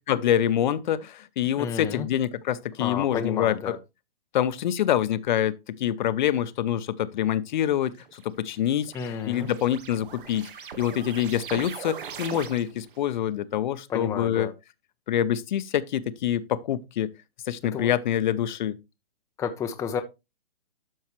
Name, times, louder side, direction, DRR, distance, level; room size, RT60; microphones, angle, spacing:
voice 1, 0.1-3.8 4.3-10.5 10.8-14.5 15.1-17.1 17.5-18.8, left 10 dB, 50° left, 0.8 m, -26 dB
voice 2, 1.6-2.1 2.8-3.8 8.9-9.5 13.9-14.5 17.7-17.9 19.4-20.0, left 7 dB, 10° left, 0.6 m, -31 dB
sound 1, 8.0-13.0, right 7 dB, 60° right, 1.4 m, -41 dB
12.0 x 5.6 x 3.1 m
hypercardioid pair, 140°, 29 cm